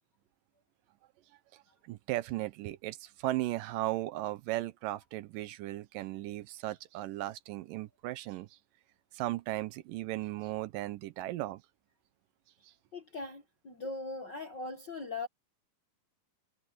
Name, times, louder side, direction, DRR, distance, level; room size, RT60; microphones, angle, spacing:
voice 1, 1.5-8.5 9.1-11.6, right 16 dB, 80° right, 2.3 m, -36 dB
voice 2, 12.9-15.3, left 3 dB, 55° left, 1.3 m, -40 dB
omnidirectional pair, 4.1 m